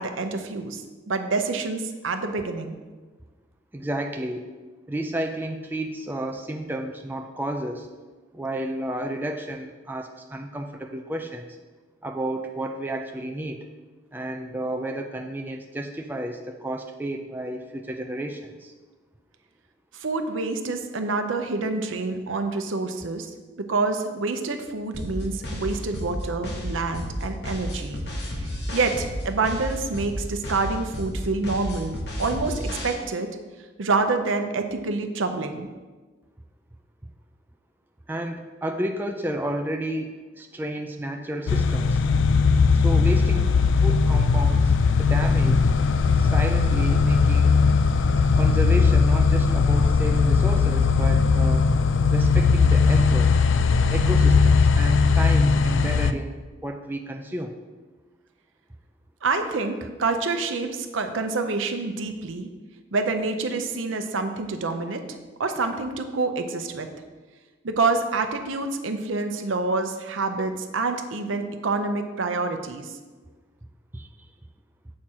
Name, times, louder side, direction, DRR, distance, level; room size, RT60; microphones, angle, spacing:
voice 1, 0.0-2.8 19.9-23.3 23.6-28.0 28.4-33.3 33.8-35.7 59.2-62.5 62.9-65.0 65.4-66.9 67.6-72.9, right 3 dB, 80° right, 7 dB, 0.7 m, -27 dB
voice 2, 3.7-4.5 4.9-7.9 8.3-11.5 12.0-13.7 14.1-18.7 38.1-42.0 42.7-45.7 46.2-47.6 48.4-51.7 52.1-53.4 53.9-57.5 73.9-74.3, right 1 dB, 10° right, 3 dB, 0.3 m, -31 dB
sound 1, 24.9-32.9, equal, 55° left, 1.2 m, -32 dB
sound 2, 41.5-56.1, left 4 dB, 75° left, 0.4 m, -19 dB
7.5 x 4.5 x 4.8 m, 1.3 s
head